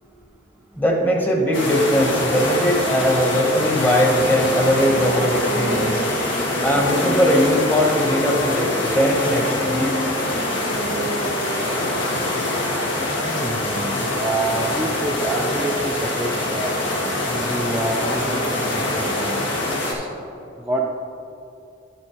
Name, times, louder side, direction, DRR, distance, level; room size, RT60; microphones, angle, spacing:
voice 1, 0.8-6.0 6.6-9.9, equal, 10° left, 0 dB, 0.9 m, -20 dB
sound 1, 1.5-19.9, left 1 dB, 80° left, 1.7 m, -24 dB
Wind instrument woodwind instrument, 4.4-13.0, left 1 dB, 50° left, 0.8 m, -31 dB
voice 2, 13.2-16.7 17.2-20.1 20.6-20.9, right 2 dB, 10° right, -4 dB, 0.5 m, -27 dB
11.0 x 7.9 x 3.0 m, 2.8 s
head